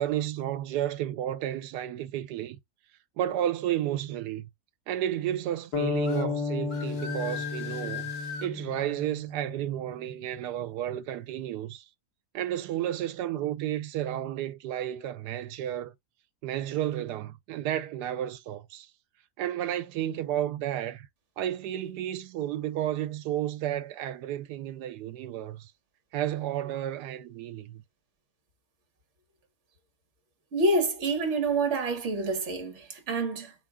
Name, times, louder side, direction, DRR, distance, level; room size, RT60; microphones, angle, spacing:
voice 1, 0.0-2.6 3.2-4.5 4.9-8.1 8.4-11.9 12.3-15.9 16.4-18.9 19.4-21.1 21.4-25.7 26.1-27.8, right 12 dB, 80° right, 1.1 m, -32 dB
sound 1, 5.7-9.7, left 4 dB, 70° left, 1.8 m, -33 dB
sound 2, 6.0-6.3 6.7-8.5, left 7 dB, 50° left, 1.3 m, -38 dB
voice 2, 30.5-33.5, right 2 dB, 50° right, 1.3 m, -27 dB
4.6 x 2.3 x 3.5 m
omnidirectional pair, 1.7 m